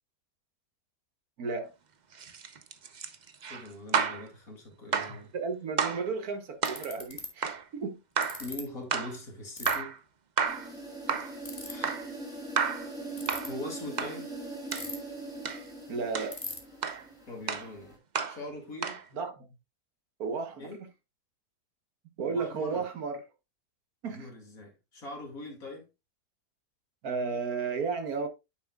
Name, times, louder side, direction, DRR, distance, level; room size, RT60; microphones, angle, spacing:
voice 1, 1.4-1.7 5.1-8.0 15.9-16.4 19.1-19.5 20.2-20.9 22.2-23.2 24.0-24.3 27.0-28.3, right 5 dB, 65° right, 1.6 m, -33 dB
sound 1, 2.1-4.3 4.9-5.2 5.8-6.1 6.6-6.9 7.4-7.6 8.2-8.5 8.9-9.2 9.7-10.0 10.4-10.7 11.1-11.4 11.8-12.1 12.6-12.9 13.3-13.5 14.0-14.2 14.7-14.9 15.5-15.6 16.1-16.4 16.8-17.0 17.5-17.7 18.2-18.4 18.8-19.0, right 6 dB, 45° right, 0.6 m, -31 dB
voice 2, 3.5-5.3 8.4-10.0 11.7-11.9 13.5-14.3 17.3-18.0 18.3-19.0 20.6-20.8 22.2-22.8 24.0-25.8, left 2 dB, 60° left, 2.8 m, -42 dB
Ratchet pawl, 5.9-6.0 6.6-7.3 8.2-8.6 9.6-9.7 11.4-11.7 13.1-13.5 14.7-15.2 15.5-15.6 15.8-15.9 16.3-16.6, left 2 dB, 20° left, 1.8 m, -38 dB
sound 2, 10.5-18.0, right 2 dB, ahead, 3.1 m, -42 dB
9.3 x 7.1 x 2.3 m
omnidirectional pair, 1.7 m